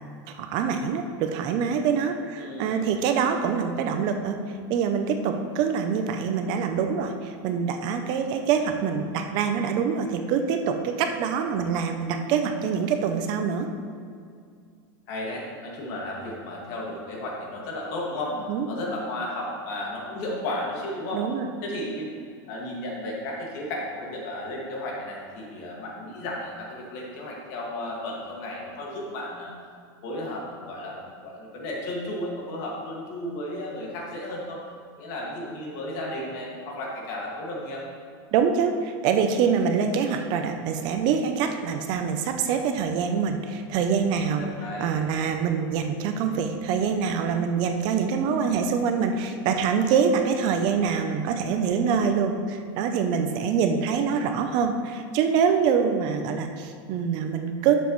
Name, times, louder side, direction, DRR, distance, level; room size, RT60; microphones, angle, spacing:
voice 1, 0.3-4.4 4.7-13.7 18.5-18.7 21.1-21.5 38.3-44.5 44.8-57.7, right 6 dB, 40° right, 6 dB, 0.5 m, -25 dB
voice 2, 2.4-2.9 15.1-21.2 21.6-22.1 22.5-29.5 30.0-34.6 35.0-37.8 44.4-44.9, left 1 dB, 50° left, -2 dB, 2.0 m, -34 dB
11.0 x 7.2 x 3.1 m, 2.2 s
supercardioid pair, 170°, 12 cm